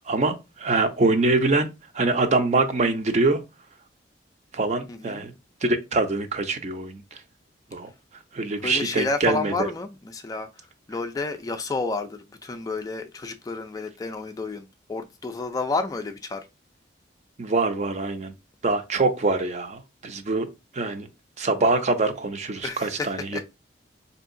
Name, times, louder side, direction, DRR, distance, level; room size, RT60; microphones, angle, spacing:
voice 1, 0.1-1.7 1.9-3.4 4.5-5.3 5.6-7.2 7.7-7.9 8.3-9.7 17.4-18.3 18.6-20.5 20.7-21.1 21.4-23.4, right 3 dB, 40° right, 0.5 m, -24 dB
voice 2, 4.9-5.3 8.6-10.5 10.9-16.5 22.6-23.4, left 3 dB, 20° left, 0.3 m, -30 dB
4.6 x 2.7 x 2.5 m
head